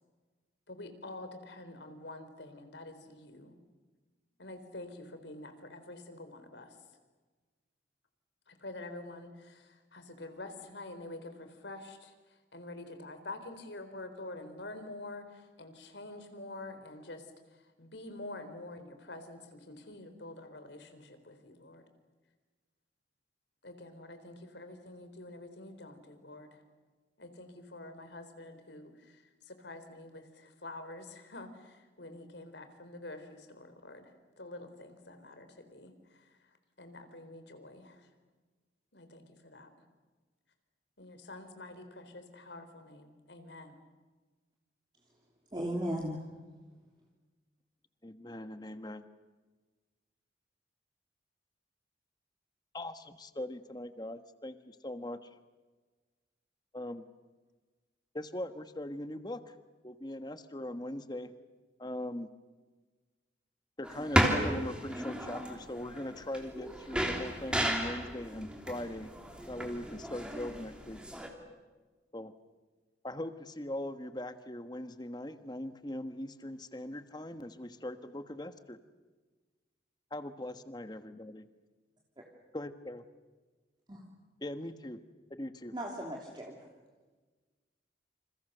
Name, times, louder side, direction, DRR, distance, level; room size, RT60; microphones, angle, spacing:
voice 1, 0.7-3.5 4.4-6.8 8.5-12.1 12.5-17.3 17.5-21.8 23.6-26.6 27.2-34.1 34.4-36.4 36.8-38.1 38.9-39.7 41.0-43.8, left 2 dB, 80° left, 8 dB, 4.1 m, -47 dB
voice 2, 45.5-46.2 83.9-84.0 85.7-86.6, equal, 25° right, -1 dB, 3.1 m, -36 dB
voice 3, 48.0-49.1 52.7-55.3 56.7-57.0 58.1-59.5 59.8-61.3 61.8-62.3 63.8-69.1 69.5-71.0 72.1-72.3 73.0-78.8 80.1-81.5 82.5-83.0 84.4-85.0 85.3-85.7, left 1 dB, 25° left, 9 dB, 1.4 m, -40 dB
sound 1, 63.8-71.3, equal, 5° right, 3.2 m, -34 dB
29.0 x 28.0 x 6.8 m, 1.3 s
head